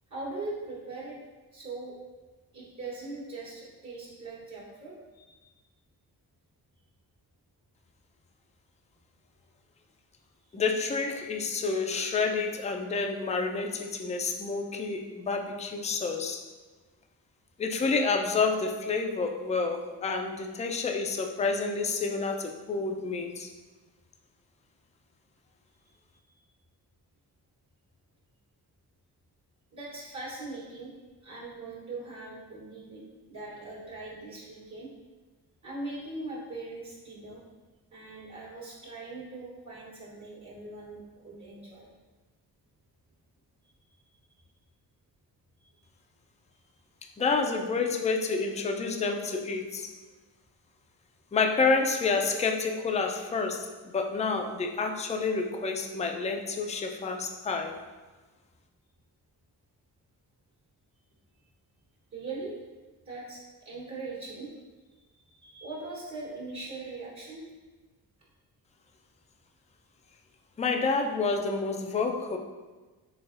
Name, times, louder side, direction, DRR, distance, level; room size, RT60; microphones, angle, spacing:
voice 1, 0.1-1.2 1.5-2.0 2.5-5.5 29.7-30.9 31.2-33.0 33.3-34.9 35.6-37.4 37.9-41.9 50.1-50.2 62.1-62.6 63.0-64.5 65.2-67.5, right 2 dB, 50° right, -6 dB, 1.2 m, -40 dB
voice 2, 10.5-16.4 17.6-23.5 47.2-49.9 51.3-53.7 53.9-57.7 70.6-72.4, left 4 dB, 20° left, 3 dB, 0.4 m, -29 dB
3.9 x 3.3 x 2.4 m, 1.3 s
cardioid pair, 60°, 38 cm